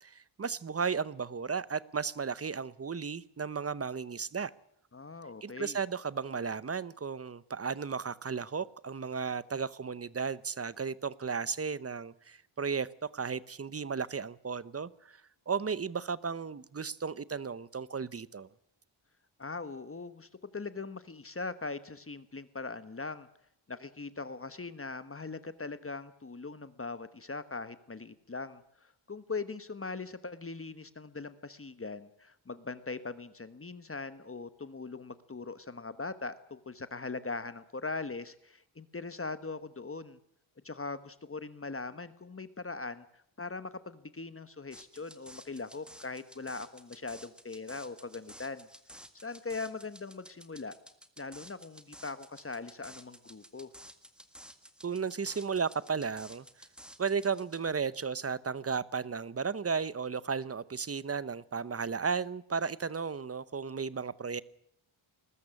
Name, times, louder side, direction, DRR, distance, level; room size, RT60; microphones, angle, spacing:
voice 1, 0.0-4.5 5.4-15.2 15.5-18.5 54.8-56.4 57.0-64.4, right 5 dB, 30° right, 18 dB, 0.8 m, -34 dB
voice 2, 4.9-5.8 19.4-23.3 23.7-40.2 40.6-48.7 49.2-50.7 51.2-53.7, left 3 dB, 25° left, 13 dB, 1.2 m, -41 dB
sound 1, 44.7-57.7, equal, ahead, 1.8 m, -53 dB
21.0 x 13.5 x 9.9 m, 0.73 s
wide cardioid pair, 125°, 48 cm